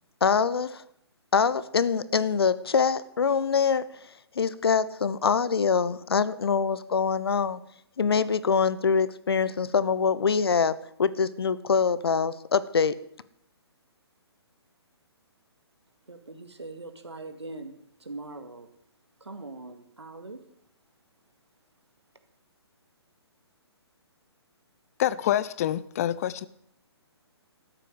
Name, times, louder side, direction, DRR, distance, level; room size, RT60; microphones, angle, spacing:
voice 1, 0.2-0.8 1.3-3.9 4.4-7.6 8.0-13.0, left 6 dB, 65° left, 17 dB, 0.9 m, -24 dB
voice 2, 16.1-17.8 18.0-18.7 19.2-20.4, right 2 dB, 80° right, 8 dB, 2.1 m, -41 dB
voice 3, 25.0-26.5, left 11 dB, 35° left, 18 dB, 0.5 m, -26 dB
13.0 x 9.2 x 7.8 m, 0.72 s
figure-of-eight pair, 130°, 14 cm